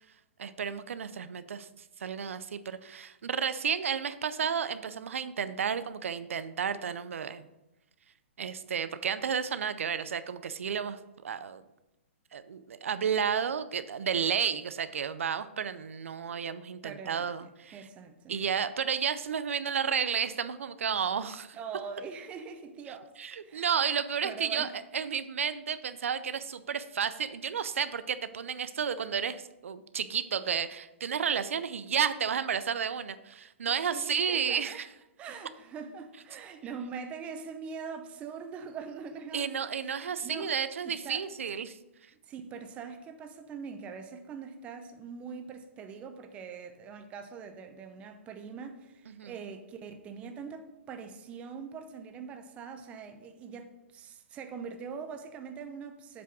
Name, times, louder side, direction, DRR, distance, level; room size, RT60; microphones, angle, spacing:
voice 1, 0.4-1.7 2.0-7.5 8.4-11.0 11.2-11.6 12.3-17.8 18.3-21.6 23.2-34.9 39.3-41.8 49.1-49.3, right 7 dB, 85° right, 0.4 m, -32 dB
voice 2, 16.8-18.4 21.5-23.1 23.4-24.7 33.9-34.8 35.2-40.5 40.8-41.2 42.2-56.2, right 6 dB, 15° right, 0.5 m, -43 dB
7.5 x 3.4 x 6.1 m
hypercardioid pair, 150°, 7 cm